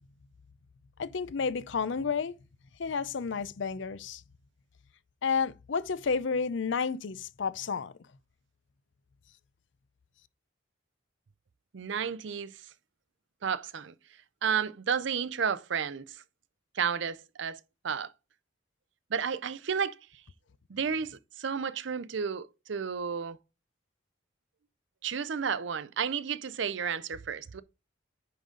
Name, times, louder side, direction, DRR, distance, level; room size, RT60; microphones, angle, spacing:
voice 1, 1.0-2.4 2.8-4.2 5.2-7.9, left 5 dB, 65° left, 0.5 m, -31 dB
voice 2, 11.7-12.7 13.4-13.9 14.4-16.2 16.7-18.1 19.1-20.0 20.7-23.4 25.0-27.6, right 7 dB, 65° right, 0.5 m, -32 dB
10.0 x 3.8 x 3.8 m
head